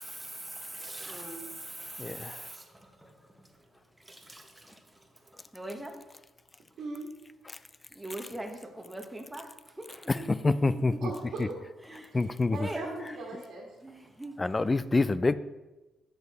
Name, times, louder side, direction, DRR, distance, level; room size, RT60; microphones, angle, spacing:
voice 1, 0.0-3.1 4.1-4.7 5.5-6.0 7.9-9.5 9.8-10.8 11.9-12.1 12.6-13.0 13.8-14.3, right 1 dB, 10° right, 1.1 m, -42 dB
voice 2, 2.0-2.4 10.1-11.1 12.1-12.7 14.4-15.3, left 3 dB, 20° left, 0.3 m, -26 dB
voice 3, 6.8-7.1 11.0-11.6 12.1-12.2 12.5-13.7, right 3 dB, 70° right, 1.6 m, -38 dB
7.0 x 6.6 x 4.0 m
cardioid pair, 90°, 0 cm